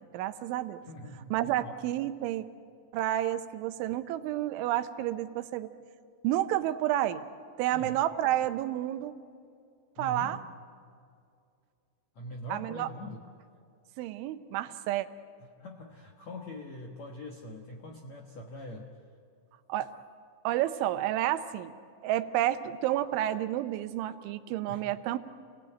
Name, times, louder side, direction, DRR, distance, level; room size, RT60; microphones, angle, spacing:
voice 1, 0.0-0.8 1.3-2.5 2.9-5.7 6.2-7.2 7.6-9.2 10.0-10.4 12.5-12.9 14.0-15.1 19.7-19.9 20.4-21.7 22.0-25.2, right 13 dB, 80° right, 11 dB, 3.2 m, -30 dB
voice 2, 0.8-1.7 7.7-8.0 10.0-10.5 12.1-13.2 15.6-19.0 24.7-24.9, left 1 dB, 65° left, 1 dB, 1.7 m, -43 dB
28.5 x 18.5 x 9.1 m, 2.3 s
omnidirectional pair, 5.5 m